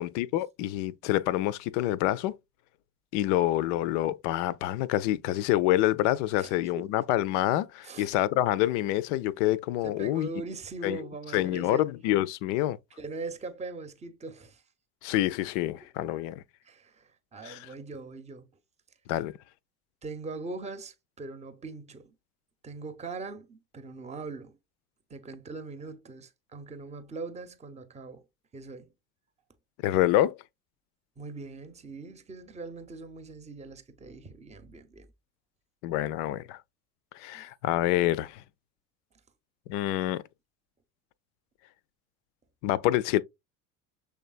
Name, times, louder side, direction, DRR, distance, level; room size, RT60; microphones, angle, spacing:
voice 1, 0.0-2.3 3.1-10.3 10.8-11.0 11.3-12.8 15.0-16.4 17.4-17.7 19.1-19.3 29.8-30.4 35.8-36.6 37.2-38.4 39.7-40.2 42.6-43.2, left 14 dB, 55° left, 0.5 m, -27 dB
voice 2, 6.4-6.9 7.8-8.1 9.8-11.9 13.0-14.6 16.0-16.1 16.6-18.5 20.0-22.1 22.6-24.6 25.1-28.2 28.5-28.9 31.2-35.1 37.3-37.5, right 3 dB, 15° right, 0.8 m, -41 dB
6.5 x 3.4 x 2.4 m
figure-of-eight pair, 70°, 43 cm